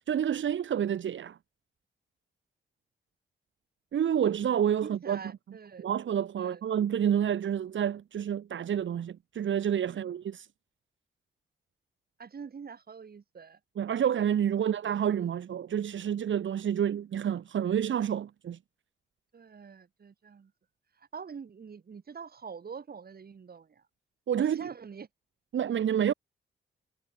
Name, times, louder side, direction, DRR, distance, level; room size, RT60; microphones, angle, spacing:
voice 1, 0.1-1.4 3.9-5.2 5.8-10.5 13.8-18.6 24.3-24.7 25.5-26.1, right 9 dB, 75° right, 3.0 m, -29 dB
voice 2, 4.8-5.9 6.4-6.6 9.9-10.0 12.2-13.6 19.3-20.5 21.0-23.8 24.4-25.1, right 6 dB, 50° right, 7.0 m, -45 dB
cardioid pair, 95°, 20 cm